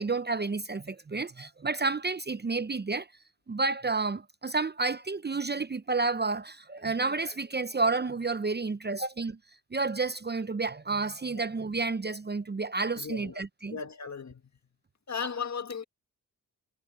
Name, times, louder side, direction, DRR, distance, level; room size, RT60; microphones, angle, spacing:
voice 1, 0.0-3.1 3.5-9.4 9.7-13.8, right 3 dB, 25° right, 0.8 m, -30 dB
voice 2, 13.0-13.4 13.7-14.4 15.1-15.8, left 6 dB, 45° left, 2.0 m, -36 dB
cardioid pair, 45°, 38 cm